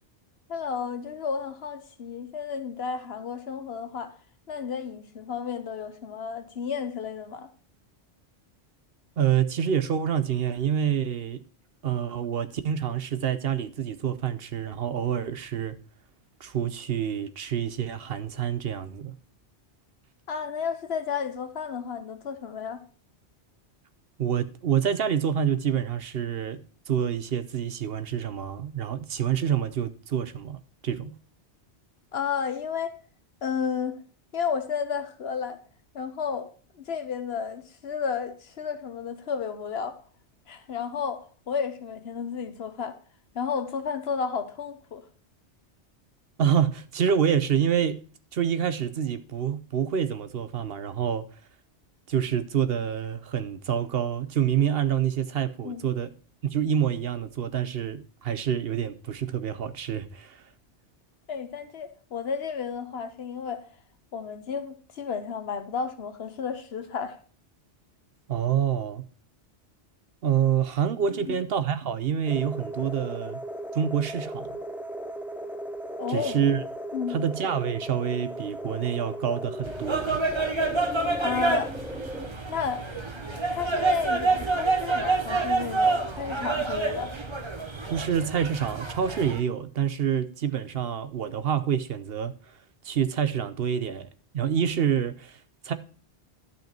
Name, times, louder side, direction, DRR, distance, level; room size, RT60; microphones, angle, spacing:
voice 1, 0.5-4.1 4.5-7.5 20.3-22.8 32.1-33.0 33.4-33.9 34.3-35.6 35.9-36.5 36.7-40.0 40.5-43.0 43.3-45.0 55.6-55.9 61.3-63.7 64.1-67.2 71.1-71.3 76.0-76.4 76.9-77.2 81.2-81.8 82.5-82.8 83.5-87.2, left 6 dB, 65° left, 1.2 m, -32 dB
voice 2, 9.2-11.4 11.8-15.7 16.4-19.1 24.2-26.6 26.9-31.1 46.4-48.0 48.3-51.2 52.1-56.1 56.4-60.4 68.3-69.0 70.2-73.4 73.7-74.6 76.1-76.6 77.1-80.2 87.9-92.3 92.8-94.1 94.3-95.4 95.6-95.7, right 8 dB, 60° right, 0.9 m, -27 dB
sound 1, 72.3-82.3, right 1 dB, ahead, 0.5 m, -37 dB
sound 2, 79.7-89.4, right 3 dB, 25° right, 1.0 m, -28 dB
11.5 x 5.5 x 4.4 m
omnidirectional pair, 1.2 m